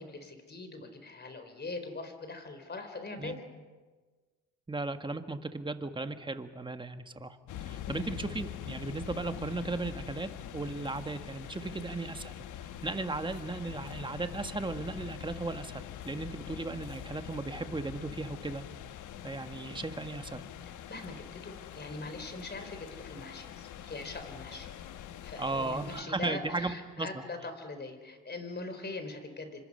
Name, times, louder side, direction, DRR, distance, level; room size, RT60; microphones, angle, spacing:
voice 1, 0.0-3.4 7.9-8.2 20.7-24.7 25.2-29.6, left 3 dB, 35° left, 7 dB, 4.5 m, -42 dB
voice 2, 4.7-18.6 19.2-20.4 25.4-27.2, right 3 dB, 15° right, 8 dB, 1.6 m, -36 dB
sound 1, 7.5-26.0, left 10 dB, 80° left, 1.3 m, -44 dB
28.0 x 25.5 x 5.6 m, 1.4 s
cardioid pair, 90°, 30 cm